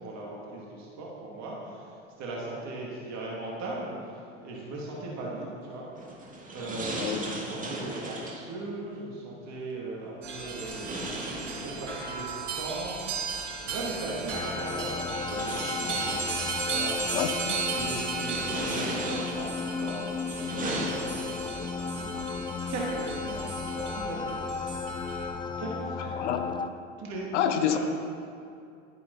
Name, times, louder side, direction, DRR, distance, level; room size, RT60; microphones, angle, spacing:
voice 1, 0.0-5.9 6.1-15.9 16.3-17.2 17.7-20.0 20.5-22.3 22.7-24.3 25.6-26.2 27.0-27.8, right 2 dB, 50° right, -4 dB, 3.3 m, -38 dB
sound 1, 5.9-8.5 10.5-12.2 13.5-13.6 14.6-16.7 17.3-17.7 18.1-19.6 20.1-21.5, right 1 dB, 20° right, 2.7 m, -37 dB
sound 2, 10.2-25.3, right 4 dB, 80° right, 2.3 m, -36 dB
sound 3, 14.3-26.7, left 5 dB, 15° left, 0.5 m, -35 dB
voice 2, 17.1-17.6 26.1-26.5 27.3-27.8, left 10 dB, 75° left, 8 dB, 0.9 m, -27 dB
12.5 x 10.5 x 4.4 m, 2.4 s
hypercardioid pair, 75°, 35 cm